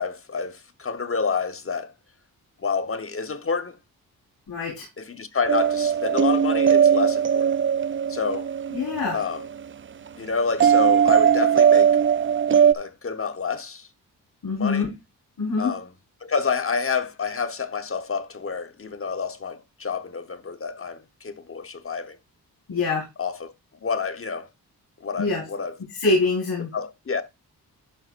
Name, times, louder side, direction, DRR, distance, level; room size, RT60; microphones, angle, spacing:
voice 1, 0.0-1.9 2.6-3.8 5.0-7.5 8.1-8.5 9.1-9.5 10.2-11.9 12.7-13.9 14.6-14.9 15.6-15.9 16.2-22.2 23.2-23.5 23.8-24.5 25.0-25.7 26.7-27.2, left 5 dB, 35° left, 1.1 m, -28 dB
voice 2, 4.5-4.8 8.7-9.2 14.4-14.9 15.4-15.7 22.7-23.0 25.2-25.4 26.0-26.7, left 3 dB, 70° left, 4.3 m, -24 dB
sound 1, 5.5-9.5 10.6-12.7, right 8 dB, 35° right, 0.4 m, -19 dB
11.5 x 5.9 x 2.5 m
cardioid pair, 65°, 37 cm